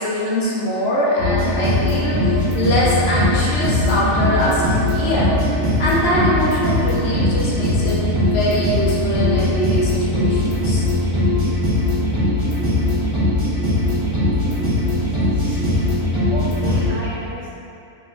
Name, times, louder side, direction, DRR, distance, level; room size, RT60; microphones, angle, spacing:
voice 1, 0.0-5.4 5.8-10.8, equal, 60° left, -6 dB, 1.0 m, -22 dB
sound 1, 1.2-16.9, left 1 dB, 25° right, 1.4 m, -20 dB
voice 2, 14.9-15.8 16.3-17.5, right 1 dB, 75° right, -6 dB, 0.4 m, -34 dB
3.5 x 3.0 x 4.0 m, 2.6 s
omnidirectional pair, 1.3 m